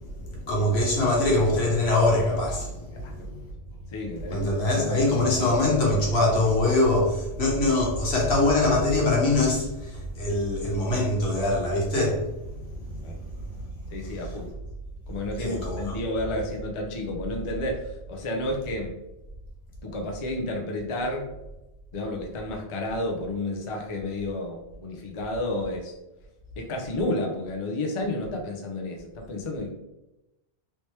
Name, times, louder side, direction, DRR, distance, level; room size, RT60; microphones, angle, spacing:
voice 1, 0.3-3.4 4.3-12.2 12.9-13.0 15.4-15.8, left 2 dB, 75° left, -3 dB, 1.3 m, -23 dB
voice 2, 3.9-5.0 13.0-13.2 13.9-14.5 15.1-19.0 19.8-21.3 21.9-25.9 26.6-29.7, left 1 dB, 40° left, 1 dB, 0.5 m, -31 dB
3.2 x 2.9 x 3.1 m, 0.95 s
omnidirectional pair, 1.1 m